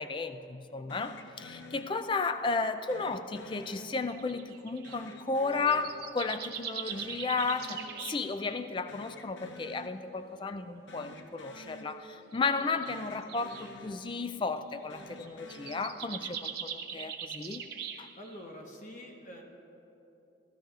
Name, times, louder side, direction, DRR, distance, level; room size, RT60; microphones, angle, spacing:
voice 1, 0.0-18.1, left 4 dB, 25° left, 10 dB, 0.3 m, -34 dB
sound 1, 0.9-2.4 2.9-4.4 4.8-6.6 6.9-8.4 8.7-10.4 10.8-12.6 12.9-14.4 14.8-16.6, left 1 dB, 80° left, 0.7 m, -50 dB
sound 2, 4.1-5.0 5.5-8.7 10.3-10.4 11.2-11.6 12.3-13.7 14.6-14.9 15.3-18.4, right 8 dB, 55° right, 0.6 m, -42 dB
voice 2, 18.2-19.4, equal, 40° left, 1 dB, 1.2 m, -46 dB
16.0 x 14.0 x 2.4 m, 3.0 s
head